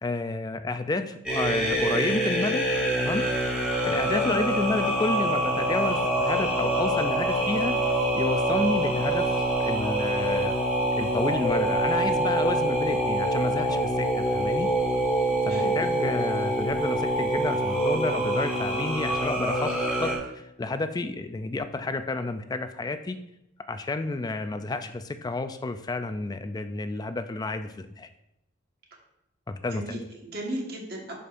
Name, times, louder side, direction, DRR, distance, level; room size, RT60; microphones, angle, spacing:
voice 1, 0.0-2.7 3.0-3.2 3.8-7.8 8.1-10.6 11.0-14.7 15.5-19.7 20.0-23.2 23.7-28.1 29.5-29.8, left 2 dB, 20° left, 9 dB, 0.3 m, -30 dB
sound 1, 1.3-20.2, right 1 dB, 5° right, 1.8 m, -25 dB
voice 2, 29.7-31.1, right 1 dB, 55° right, -1 dB, 1.5 m, -35 dB
11.0 x 5.1 x 2.5 m, 0.85 s
head